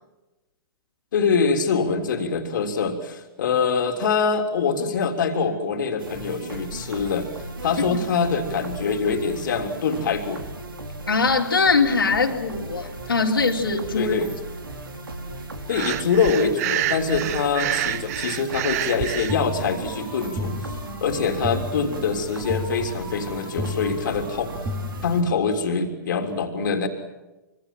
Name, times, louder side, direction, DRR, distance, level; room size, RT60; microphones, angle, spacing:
voice 1, 1.1-7.3 7.6-10.4 13.9-14.3 15.7-20.6 21.0-24.6 25.0-26.9, left 5 dB, 60° left, 4 dB, 3.4 m, -24 dB
sound 1, 6.0-25.2, right 2 dB, 80° right, 4.7 m, -37 dB
voice 2, 11.1-14.2, left 4 dB, 80° left, 0 dB, 3.6 m, -22 dB
Breathing, 15.7-19.3, right 14 dB, 45° right, 0.9 m, -28 dB
sound 2, 19.3-25.7, left 1 dB, 20° right, 4.0 m, -34 dB
26.5 x 25.0 x 7.7 m, 1.1 s
figure-of-eight pair, 115°, 12 cm